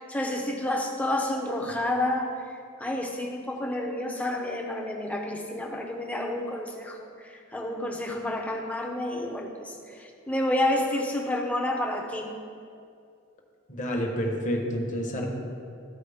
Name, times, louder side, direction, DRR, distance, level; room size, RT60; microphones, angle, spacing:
voice 1, 0.0-12.3, left 1 dB, 5° left, 0 dB, 0.7 m, -30 dB
voice 2, 13.7-15.3, equal, 35° left, 1 dB, 1.0 m, -29 dB
13.5 x 4.6 x 3.5 m, 2.4 s
head